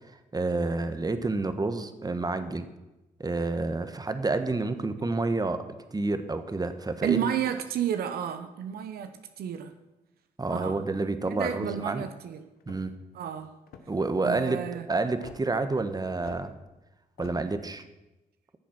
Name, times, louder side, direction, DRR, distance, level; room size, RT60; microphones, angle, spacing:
voice 1, 0.3-2.7 3.2-5.6 5.9-7.3 10.4-12.0 12.7-12.9 13.9-16.5 17.2-17.8, right 3 dB, 25° right, 10 dB, 1.2 m, -29 dB
voice 2, 7.0-9.7 10.5-10.8 11.3-12.5 13.1-13.5 14.2-14.9, right 9 dB, 80° right, 8 dB, 0.9 m, -31 dB
sound 1, 11.6-12.0 12.6-13.0 13.7-14.1 15.2-15.4 16.2-16.4 17.2-17.4, left 7 dB, 75° left, 1.1 m, -48 dB
14.0 x 7.0 x 6.0 m, 1.0 s
supercardioid pair, 55°, 16 cm